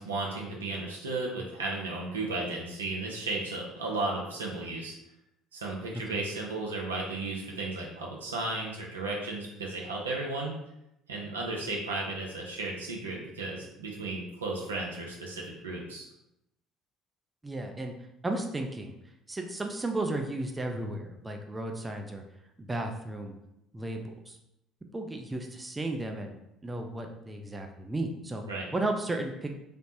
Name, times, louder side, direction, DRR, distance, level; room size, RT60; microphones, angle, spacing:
voice 1, 0.0-4.9 5.5-10.5 11.1-16.1 28.5-28.7, right 2 dB, 90° right, -1 dB, 0.5 m, -34 dB
voice 2, 17.4-17.9 18.2-18.9 19.3-22.2 22.6-23.3 23.7-24.4 24.9-26.3 26.6-28.4 28.7-29.5, right 2 dB, 20° right, 3 dB, 0.4 m, -34 dB
3.3 x 2.0 x 2.7 m, 0.84 s
hypercardioid pair, 60°, 0 cm